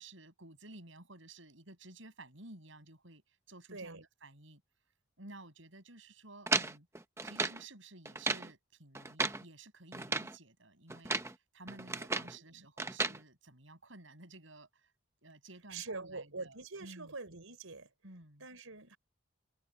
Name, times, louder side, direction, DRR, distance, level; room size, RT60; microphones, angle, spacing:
voice 1, 0.0-4.6 5.2-6.9 7.2-14.9 15.2-17.1 18.0-18.5, right 2 dB, 65° right, 6.9 m, -54 dB
voice 2, 3.7-4.0 12.4-12.7 15.7-17.9 18.4-19.0, right 3 dB, 85° right, 4.7 m, -45 dB
sound 1, 6.5-7.6 8.0-8.5 8.9-9.4 9.9-10.3 10.9-11.3 11.7-12.4 12.8-13.2, right 3 dB, 15° right, 0.7 m, -34 dB
head